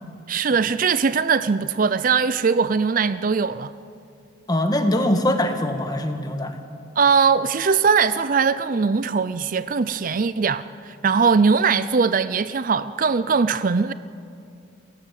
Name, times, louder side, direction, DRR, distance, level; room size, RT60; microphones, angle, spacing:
voice 1, 0.3-3.7 7.0-13.9, right 5 dB, 45° right, 0.5 m, -20 dB
voice 2, 4.5-6.6, left 1 dB, 20° left, 1.5 m, -22 dB
28.5 x 15.5 x 7.5 m
head